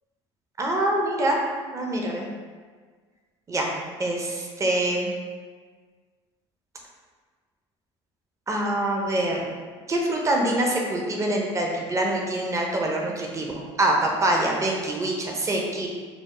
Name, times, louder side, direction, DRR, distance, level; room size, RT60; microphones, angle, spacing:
voice 1, 0.6-1.4 1.7-2.3 3.5-3.7 4.0-5.1 8.5-9.5 9.9-15.9, right 1 dB, 20° right, 0 dB, 0.6 m, -25 dB
4.1 x 2.0 x 3.0 m, 1.5 s
hypercardioid pair, 75°, 14 cm